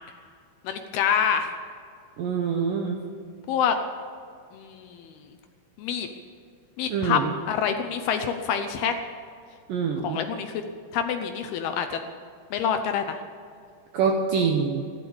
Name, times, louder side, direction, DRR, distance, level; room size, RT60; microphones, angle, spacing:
voice 1, 0.6-1.5 3.5-3.8 4.5-5.1 5.8-6.1 6.8-7.2 7.5-8.9 10.0-10.5 10.9-12.0 12.5-13.2, left 8 dB, 75° left, 6 dB, 2.5 m, -26 dB
voice 2, 2.2-3.0 6.9-7.2 9.7-10.2 13.9-14.8, right 6 dB, 70° right, 2 dB, 2.1 m, -25 dB
15.5 x 12.5 x 7.1 m, 2.2 s
omnidirectional pair, 5.1 m